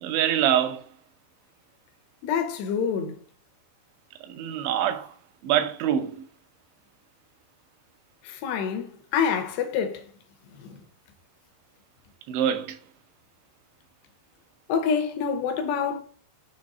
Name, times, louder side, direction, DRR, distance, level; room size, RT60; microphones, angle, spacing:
voice 1, 0.0-0.8 4.3-5.1 5.4-6.1 12.3-12.8, right 10 dB, 85° right, 3.1 m, -24 dB
voice 2, 2.2-3.1 8.2-10.0 14.7-16.0, left 7 dB, 75° left, 2.9 m, -26 dB
7.7 x 3.4 x 5.4 m
omnidirectional pair, 5.2 m